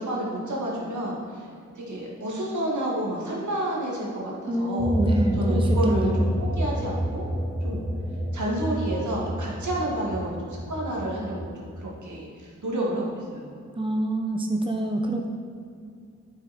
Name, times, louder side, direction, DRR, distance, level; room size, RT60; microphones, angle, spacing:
voice 1, 0.0-1.5 1.7-4.9 5.4-7.2 7.6-7.8 8.3-13.5, right 1 dB, 65° right, -3 dB, 2.4 m, -30 dB
voice 2, 4.5-6.3 13.8-15.3, right 1 dB, 15° right, 2 dB, 1.0 m, -26 dB
sound 1, 4.8-11.7, equal, 10° left, 1.2 m, -28 dB
8.7 x 7.4 x 4.5 m, 2.4 s
cardioid pair, 40°, 31 cm